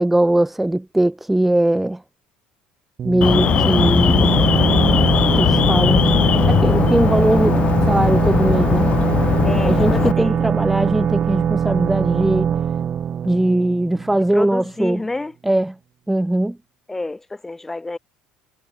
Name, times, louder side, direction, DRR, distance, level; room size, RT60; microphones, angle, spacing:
voice 1, 0.0-2.0 3.0-4.5 5.4-6.1 6.4-8.9 9.6-12.5 13.2-15.0 15.4-15.8 16.1-16.6, right 1 dB, 5° right, 2.4 m, -20 dB
sound 1, 3.0-14.5, right 8 dB, 35° right, 1.2 m, -22 dB
Alarm, 3.2-10.1, left 9 dB, 40° left, 1.1 m, -18 dB
voice 2, 9.4-10.4 14.3-15.3 16.9-18.0, left 2 dB, 10° left, 4.9 m, -29 dB
cardioid pair, 130°, 3 cm